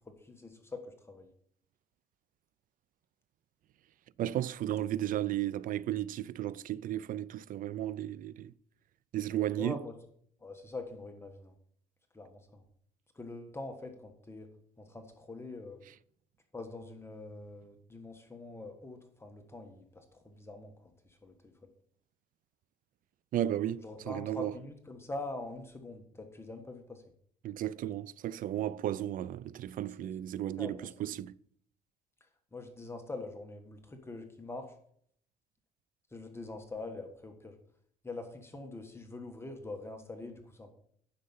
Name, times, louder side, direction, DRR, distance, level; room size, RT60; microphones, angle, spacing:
voice 1, 0.0-1.3 9.6-9.9 10.4-11.5 12.1-12.7 13.1-14.5 14.8-15.8 16.5-21.5 23.8-27.0 30.0-30.1 30.6-30.8 32.5-34.7 36.1-37.6 38.0-40.7, left 2 dB, 15° left, 1.4 m, -44 dB
voice 2, 4.2-8.5 9.1-9.8 23.3-24.5 27.4-31.3, right 12 dB, 55° right, 0.5 m, -34 dB
10.0 x 6.7 x 5.6 m
cardioid pair, 110°, 17 cm